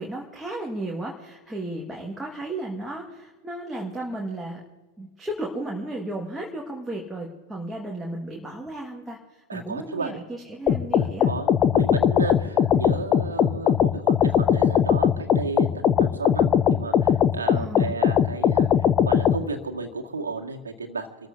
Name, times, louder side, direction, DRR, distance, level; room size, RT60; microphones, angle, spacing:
voice 1, 0.0-4.6 5.0-11.3 17.5-17.9, right 1 dB, 5° right, -3 dB, 1.8 m, -34 dB
voice 2, 9.5-10.2 11.0-21.1, right 3 dB, 75° right, 3 dB, 2.0 m, -33 dB
sound 1, 10.7-19.4, left 8 dB, 30° left, 0.7 m, -20 dB
28.5 x 14.5 x 2.8 m, 1.3 s
figure-of-eight pair, 90°, 0 cm